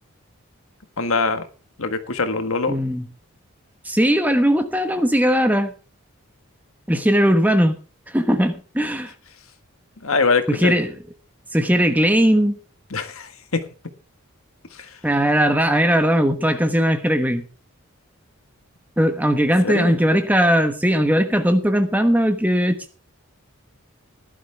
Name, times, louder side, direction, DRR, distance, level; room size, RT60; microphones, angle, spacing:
voice 1, 1.0-1.4 1.8-2.7 10.0-10.7 12.9-13.6 14.7-15.0 19.6-20.0, left 4 dB, 75° left, 1.6 m, -23 dB
voice 2, 2.7-3.0 3.8-5.7 6.9-7.8 8.1-9.1 10.5-10.9 11.5-12.6 15.0-17.4 19.0-23.0, equal, 5° right, 1.2 m, -19 dB
16.5 x 11.5 x 3.4 m
head